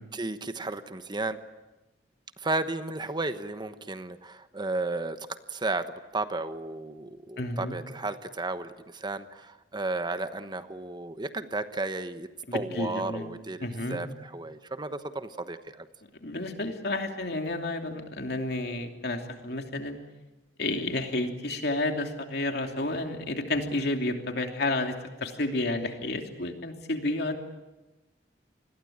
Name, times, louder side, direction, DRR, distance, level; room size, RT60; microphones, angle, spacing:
voice 1, 0.1-1.4 2.4-5.2 5.5-15.9, right 2 dB, 25° right, 10 dB, 1.1 m, -33 dB
voice 2, 7.4-7.8 12.5-13.3 13.6-14.0 16.2-20.0 20.6-24.9 25.2-27.4, left 2 dB, 65° left, 4 dB, 2.9 m, -31 dB
28.0 x 21.5 x 8.8 m, 1.1 s
head